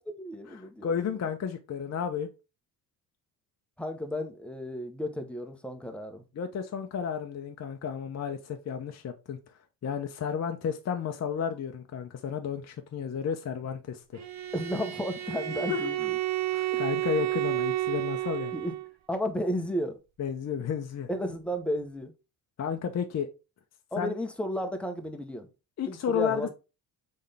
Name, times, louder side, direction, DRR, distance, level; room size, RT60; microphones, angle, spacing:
voice 1, 0.2-1.1 3.8-6.2 14.5-16.2 18.5-18.8 19.1-20.0 21.1-22.1 23.9-25.5 25.9-26.5, equal, ahead, 0.9 m, -33 dB
voice 2, 0.8-2.3 6.4-9.4 9.8-14.2 15.7-15.9 16.5-18.5 20.2-21.1 22.6-23.3 24.0-24.1 25.8-26.5, left 7 dB, 35° left, 0.6 m, -32 dB
Bowed string instrument, 14.1-18.9, right 16 dB, 35° right, 0.6 m, -31 dB
4.2 x 3.7 x 3.3 m
hypercardioid pair, 60°, 50 cm